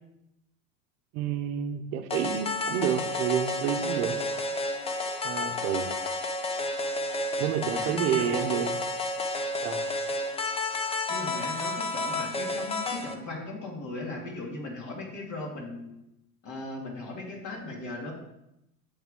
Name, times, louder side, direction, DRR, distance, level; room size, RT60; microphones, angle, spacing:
voice 1, 1.1-4.2 5.2-5.9 7.4-8.8 9.6-9.8, right 9 dB, 65° right, 7 dB, 0.8 m, -29 dB
sound 1, 2.1-13.1, left 2 dB, 15° left, 0.5 m, -31 dB
voice 2, 7.6-8.3 11.1-15.9 16.4-18.1, left 2 dB, 40° left, -1 dB, 2.1 m, -38 dB
8.2 x 3.5 x 3.6 m, 0.86 s
hypercardioid pair, 90°, 46 cm